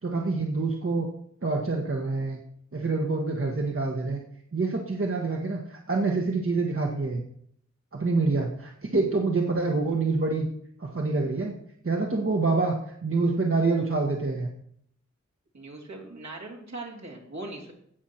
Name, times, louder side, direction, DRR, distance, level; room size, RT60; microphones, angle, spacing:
voice 1, 0.0-1.1 1.4-2.4 2.7-4.2 4.5-7.2 7.9-10.5 10.8-11.6 11.8-12.8 13.0-14.5, right 3 dB, 50° right, 0 dB, 1.4 m, -26 dB
voice 2, 15.5-17.7, right 2 dB, 70° right, -1 dB, 3.1 m, -40 dB
16.5 x 6.4 x 4.4 m, 0.68 s
wide cardioid pair, 80°, 29 cm